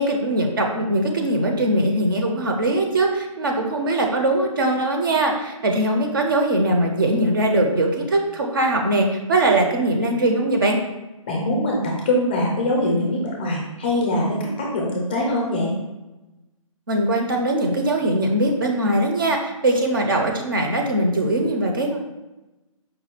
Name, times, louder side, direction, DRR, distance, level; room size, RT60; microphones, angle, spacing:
voice 1, 0.0-10.8 16.9-22.0, right 1 dB, 40° right, 2 dB, 0.5 m, -21 dB
voice 2, 11.3-15.7, left 1 dB, 15° left, -2 dB, 0.5 m, -23 dB
4.9 x 2.2 x 4.3 m, 1.0 s
hypercardioid pair, 170°, 18 cm